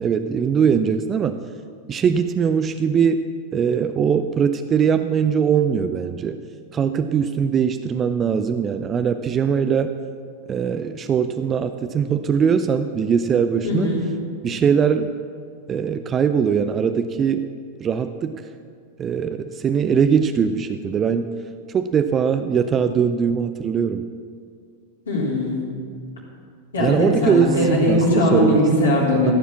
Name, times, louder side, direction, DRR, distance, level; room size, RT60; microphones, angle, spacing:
voice 1, 0.0-1.4 1.9-3.2 3.5-6.4 6.7-9.9 10.5-13.9 14.4-15.1 15.7-17.5 17.8-18.4 19.0-21.3 21.7-24.1 26.8-28.6 29.2-29.3, right 7 dB, 25° right, 9 dB, 0.5 m, -21 dB
voice 2, 13.6-14.1 25.1-25.7 26.7-29.3, left 1 dB, 70° left, -5 dB, 3.7 m, -19 dB
15.0 x 7.1 x 7.1 m, 2.1 s
figure-of-eight pair, 90°, 0 cm